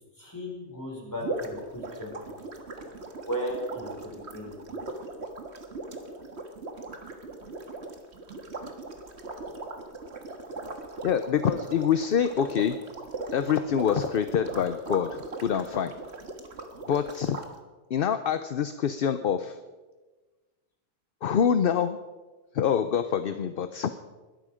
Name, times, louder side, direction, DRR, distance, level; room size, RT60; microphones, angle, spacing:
voice 1, 0.2-2.2 3.1-4.6, equal, 15° left, -3 dB, 5.2 m, -36 dB
sound 1, 1.2-17.5, right 3 dB, 75° right, 1.8 m, -39 dB
voice 2, 11.0-12.8 13.3-15.9 16.9-17.4 17.9-19.6 21.2-22.0 22.5-23.9, left 8 dB, 60° left, 11 dB, 0.8 m, -26 dB
21.0 x 13.0 x 5.0 m, 1.3 s
omnidirectional pair, 1.1 m